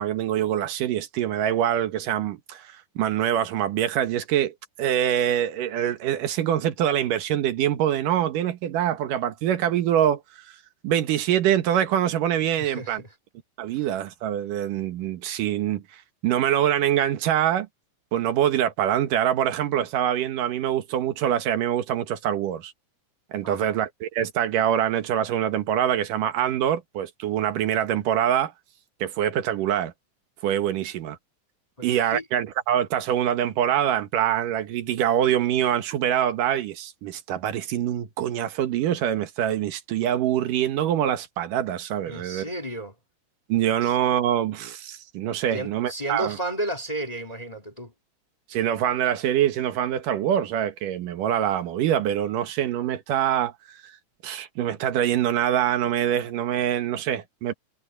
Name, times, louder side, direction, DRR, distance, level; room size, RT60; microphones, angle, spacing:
voice 1, 0.0-10.6 10.8-13.0 13.6-17.7 18.1-22.7 23.3-28.5 29.0-29.9 30.4-31.2 31.8-42.4 43.5-46.4 48.5-53.8 54.2-57.5, right 10 dB, 80° right, 2.9 m, -24 dB
voice 2, 12.6-13.1 13.7-13.8 23.4-23.8 31.8-32.2 42.0-43.0 43.8-44.0 45.5-47.9, right 1 dB, 15° left, 1.9 m, -33 dB
omnidirectional pair, 3.7 m